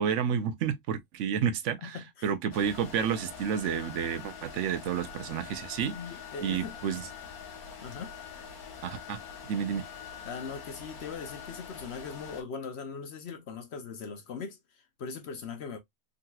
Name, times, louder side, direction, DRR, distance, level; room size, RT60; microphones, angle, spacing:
voice 1, 0.0-2.0 2.2-6.0 6.4-7.1 8.8-9.9, right 8 dB, 65° right, 0.8 m, -30 dB
voice 2, 1.8-2.3 5.8-6.8 7.8-8.1 10.2-15.8, left 5 dB, 60° left, 0.7 m, -40 dB
sound 1, 2.5-12.4, left 6 dB, 80° left, 1.3 m, -44 dB
3.8 x 2.8 x 2.2 m
omnidirectional pair, 1.6 m